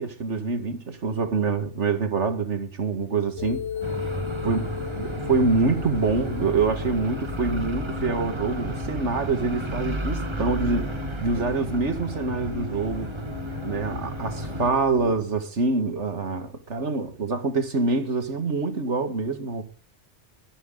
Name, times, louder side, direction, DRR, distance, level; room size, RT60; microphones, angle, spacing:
voice 1, 0.0-3.7 4.4-4.7 5.0-10.9 11.2-13.1 13.6-19.6, right 4 dB, 75° right, 2.2 m, -25 dB
sound 1, 3.4-15.1, left 10 dB, 75° left, 1.2 m, -36 dB
sound 2, 3.8-14.7, right 2 dB, 25° right, 1.3 m, -33 dB
21.0 x 10.5 x 3.9 m
omnidirectional pair, 1.2 m